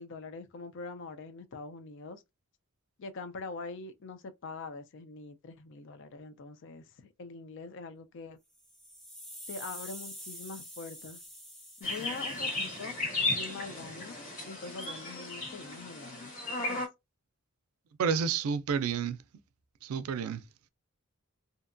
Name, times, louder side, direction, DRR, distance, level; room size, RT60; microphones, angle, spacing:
voice 1, 0.0-2.2 3.0-6.8 7.2-8.4 9.5-11.2 11.8-13.0 13.3-16.3 16.6-16.9, left 4 dB, 60° left, 0.4 m, -43 dB
sound 1, 8.5-12.7, equal, ahead, 0.6 m, -46 dB
sound 2, 11.8-16.9, left 2 dB, 35° left, 1.5 m, -35 dB
voice 2, 18.0-19.2 19.8-20.4, right 6 dB, 80° right, 0.4 m, -30 dB
2.7 x 2.2 x 2.5 m
head